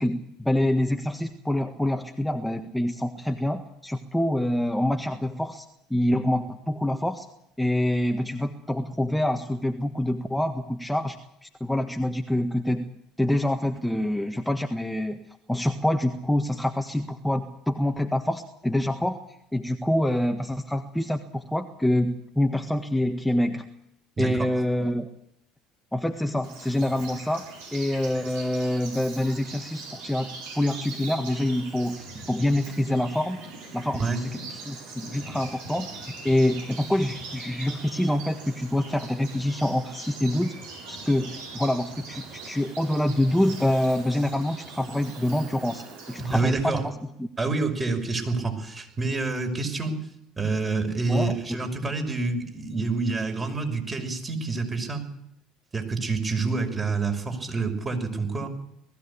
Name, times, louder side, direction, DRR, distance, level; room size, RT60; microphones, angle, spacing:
voice 1, 0.0-5.6 5.9-7.3 7.6-11.2 11.4-12.9 13.2-15.2 15.5-19.2 19.5-23.7 24.2-25.1 25.9-27.4 27.7-33.4 33.7-34.0 34.3-35.9 36.2-40.5 40.9-46.9 47.2-47.3 51.1-51.6, left 1 dB, 5° left, 5 dB, 1.5 m, -26 dB
voice 2, 24.2-24.5 34.0-34.2 46.2-46.8 47.4-50.0 50.4-55.0 55.7-58.5, right 3 dB, 25° right, 4 dB, 5.8 m, -27 dB
Bird vocalization bird call bird song, 26.4-46.4, right 4 dB, 75° right, 7.0 m, -42 dB
20.0 x 15.0 x 8.6 m, 0.81 s
hypercardioid pair, 70°, 0 cm